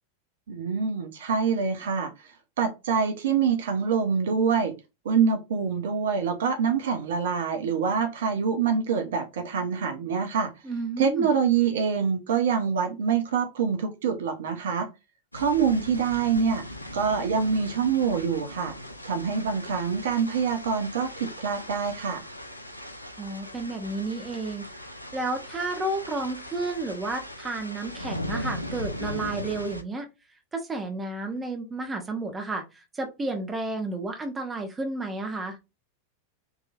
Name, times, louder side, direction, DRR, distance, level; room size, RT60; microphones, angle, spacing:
voice 1, 0.5-2.1 2.6-4.7 5.0-10.5 11.0-14.9 15.3-16.6 16.9-18.7 19.0-22.3, right 6 dB, 60° right, 0.8 m, -25 dB
voice 2, 10.6-11.3 23.2-24.9 25.1-30.0 30.5-35.6, right 2 dB, 15° right, 1.1 m, -32 dB
sound 1, 15.3-29.8, left 1 dB, 85° left, 0.6 m, -39 dB
4.9 x 3.0 x 2.5 m
figure-of-eight pair, 90°, 0 cm